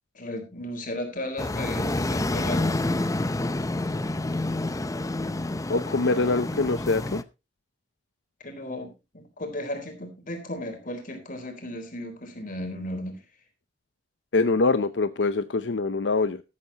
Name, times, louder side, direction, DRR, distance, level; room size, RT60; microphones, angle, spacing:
voice 1, 0.1-2.8 8.4-13.2, left 1 dB, 50° left, 5 dB, 4.0 m, -35 dB
sound 1, 1.4-7.2, left 2 dB, 20° left, 0.6 m, -28 dB
voice 2, 5.7-7.2 14.3-16.4, left 3 dB, 90° left, 12 dB, 0.7 m, -24 dB
13.0 x 12.5 x 2.9 m, 0.27 s
head